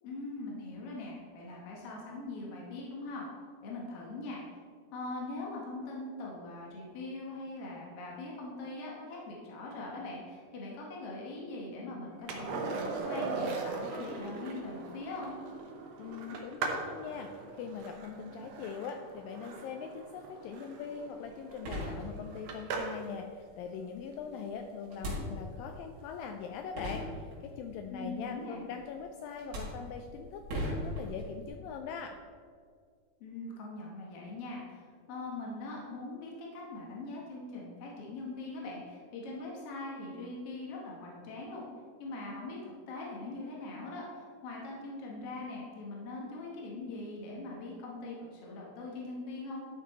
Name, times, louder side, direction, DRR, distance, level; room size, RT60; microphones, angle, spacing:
voice 1, 0.0-3.3 3.6-4.4 4.9-12.8 13.0-15.4 27.9-28.6 33.2-41.6 42.0-49.6, left 2 dB, 70° left, -3 dB, 1.4 m, -41 dB
Skateboard, 12.3-23.1 25.7-25.8, right 4 dB, 85° right, 1.5 m, -40 dB
voice 2, 16.0-17.3 17.6-32.2, left 6 dB, 85° left, 5 dB, 2.0 m, -42 dB
sound 1, 21.2-21.3 21.6-22.6 24.9-25.8 26.4-26.5 26.8-27.7 28.8-29.0 29.4-31.5, equal, 55° right, 3.6 m, -38 dB
12.0 x 6.0 x 4.2 m, 2.1 s
omnidirectional pair, 4.6 m